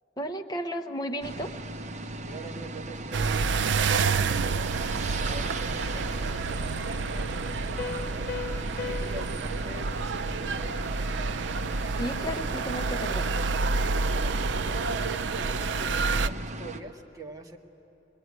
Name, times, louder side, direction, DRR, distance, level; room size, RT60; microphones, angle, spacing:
voice 1, 0.2-1.5 11.9-13.3, equal, 20° left, 6 dB, 0.9 m, -33 dB
sound 1, 1.2-16.8, right 2 dB, 40° right, 0.9 m, -38 dB
voice 2, 2.2-10.7 14.0-17.6, right 2 dB, 20° right, 1 dB, 1.7 m, -44 dB
sound 2, 3.1-16.3, right 4 dB, 75° right, 0.5 m, -29 dB
Piano, 7.8-11.2, left 4 dB, 55° left, 0.5 m, -39 dB
22.5 x 22.0 x 9.7 m, 2.9 s
head